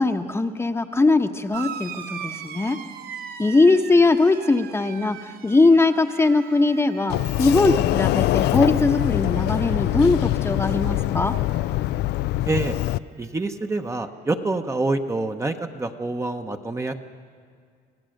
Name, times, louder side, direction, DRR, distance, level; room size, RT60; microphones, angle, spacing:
voice 1, 0.0-2.8 3.4-11.3, left 3 dB, 15° left, 6 dB, 0.9 m, -20 dB
sound 1, 1.5-10.5 10.8-11.6 12.7-12.8, right 8 dB, 65° right, 0.9 m, -41 dB
Sliding door, 7.1-13.0, left 15 dB, 75° left, 0.4 m, -23 dB
voice 2, 12.5-12.8 13.2-16.9, right 2 dB, 15° right, 5 dB, 0.9 m, -26 dB
26.0 x 17.0 x 6.5 m, 2.1 s
cardioid pair, 110°, 17 cm